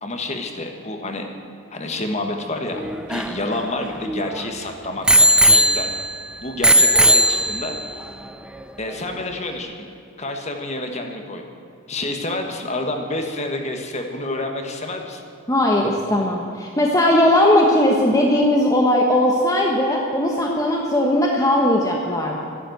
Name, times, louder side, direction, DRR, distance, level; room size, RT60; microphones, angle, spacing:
voice 1, 0.0-1.3 1.7-2.8 3.1-5.9 6.4-7.8 8.8-9.7 10.2-11.4 11.9-15.2, left 2 dB, 30° left, 4 dB, 1.5 m, -28 dB
Bicycle bell, 2.8-4.4 5.1-6.2 6.6-7.9 8.6-8.7, equal, 5° right, 0.4 m, -17 dB
voice 2, 15.5-22.5, left 1 dB, 15° left, 0 dB, 1.1 m, -18 dB
13.5 x 11.5 x 8.0 m, 2.8 s
head